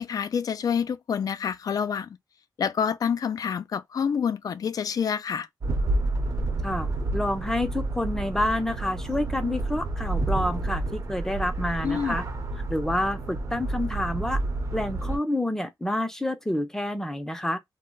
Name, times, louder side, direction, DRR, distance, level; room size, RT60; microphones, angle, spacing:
voice 1, 0.0-2.2 2.6-5.5 11.8-12.2, left 7 dB, 55° left, 0.3 m, -27 dB
sound 1, 5.6-15.2, right 2 dB, 50° right, 0.8 m, -29 dB
voice 2, 6.6-12.2 12.7-14.4 14.7-17.6, left 1 dB, 5° left, 0.5 m, -28 dB
2.2 x 2.1 x 3.7 m
cardioid pair, 90°, 7 cm